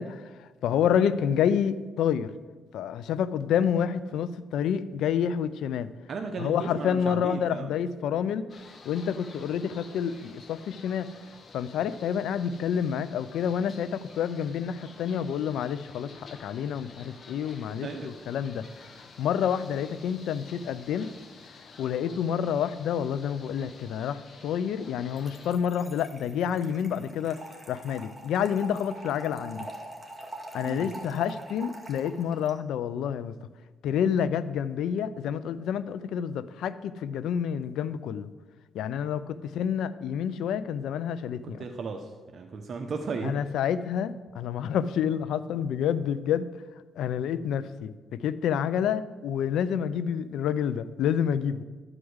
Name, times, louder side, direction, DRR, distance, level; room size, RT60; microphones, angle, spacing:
voice 1, 0.0-2.3 2.7-5.9 6.4-8.5 8.8-11.1 11.5-18.7 19.2-21.1 21.8-29.7 30.5-33.3 33.8-38.3 38.7-41.6 43.2-46.5 47.0-51.6, left 8 dB, 80° left, 15 dB, 0.5 m, -28 dB
voice 2, 6.1-7.7 17.8-18.1 30.6-30.9 41.4-43.4, right 4 dB, 50° right, 4 dB, 0.9 m, -35 dB
sound 1, 8.5-25.5, left 4 dB, 45° left, 1.3 m, -50 dB
Trickle dribble / Fill (with liquid), 25.2-32.5, right 1 dB, 5° right, 2.1 m, -43 dB
12.5 x 5.0 x 8.0 m, 1.3 s
cardioid pair, 90°, 0 cm